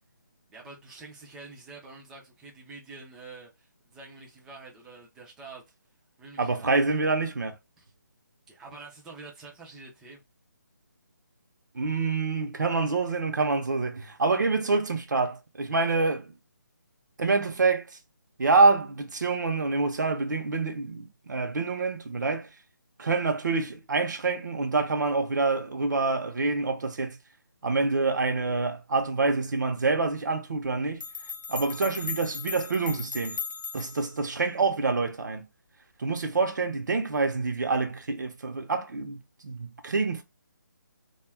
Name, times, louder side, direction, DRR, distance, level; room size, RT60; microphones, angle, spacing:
voice 1, 0.5-5.6 6.2-6.8 7.8-7.9 8.5-10.2, right 3 dB, 5° right, 0.3 m, -47 dB
voice 2, 6.4-7.5 11.7-16.3 17.2-17.9 18.4-22.5 23.0-27.2 27.6-31.0 31.5-33.4 33.7-35.5 36.0-40.2, right 3 dB, 65° right, 0.7 m, -26 dB
sound 1, 30.6-30.7 31.0-34.2, left 5 dB, 80° left, 0.5 m, -37 dB
2.3 x 2.1 x 3.3 m
figure-of-eight pair, 160°, 10 cm